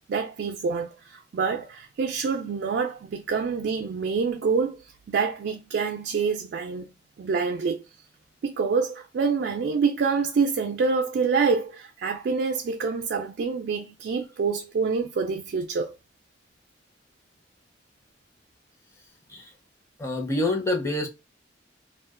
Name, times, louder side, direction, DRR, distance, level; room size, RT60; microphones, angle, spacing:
voice 1, 0.1-4.8 5.1-6.9 7.2-7.8 8.4-15.9, right 5 dB, 60° right, 0.3 m, -26 dB
voice 2, 20.0-21.1, left 2 dB, 15° left, 0.6 m, -26 dB
2.3 x 2.2 x 3.5 m
head